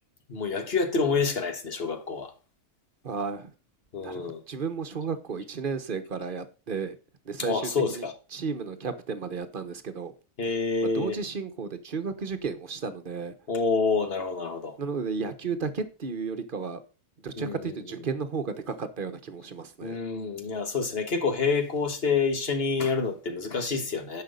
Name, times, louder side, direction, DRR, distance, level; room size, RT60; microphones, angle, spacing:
voice 1, 0.3-2.3 3.9-4.4 7.5-8.1 10.4-11.2 13.5-14.7 17.4-17.5 19.8-24.2, left 4 dB, 45° left, 1.5 m, -27 dB
voice 2, 3.0-3.5 4.0-7.0 7.2-10.1 10.4-13.3 14.8-16.8 17.2-20.0, right 5 dB, 40° right, 1.1 m, -33 dB
10.0 x 5.6 x 5.3 m
omnidirectional pair, 1.5 m